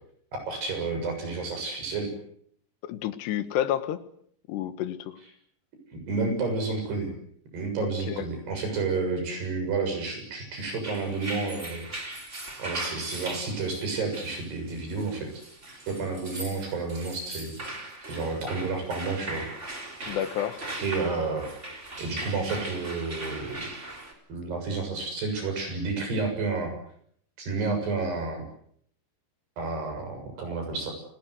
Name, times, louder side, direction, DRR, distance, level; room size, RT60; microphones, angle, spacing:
voice 1, 0.5-2.1 5.9-7.1 7.5-11.9 12.6-15.3 15.9-19.4 20.8-23.7 24.3-26.7 27.4-28.4 29.6-30.9, right 4 dB, 65° right, 5 dB, 9.0 m, -30 dB
voice 2, 2.8-4.0 4.5-5.2 7.8-8.3 20.1-20.7, left 11 dB, 70° left, 11 dB, 3.4 m, -30 dB
sound 1, 10.7-24.1, right 1 dB, 15° right, 3.6 m, -39 dB
29.0 x 20.5 x 8.1 m, 0.67 s
omnidirectional pair, 5.2 m